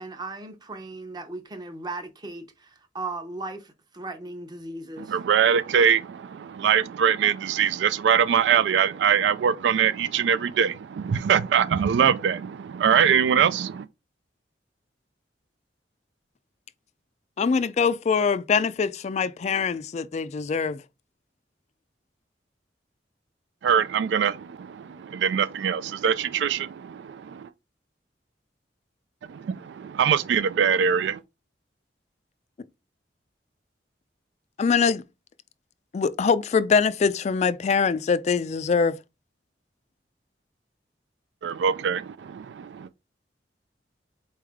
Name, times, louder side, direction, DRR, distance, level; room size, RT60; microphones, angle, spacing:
voice 1, 0.0-5.2, right 2 dB, 25° right, 0.8 m, -37 dB
voice 2, 5.0-13.9 23.6-27.5 29.3-31.2 41.4-42.9, right 7 dB, 75° right, 0.3 m, -23 dB
voice 3, 17.4-20.8 34.6-35.0 35.9-39.0, left 5 dB, 40° left, 0.3 m, -23 dB
4.2 x 3.3 x 3.5 m
head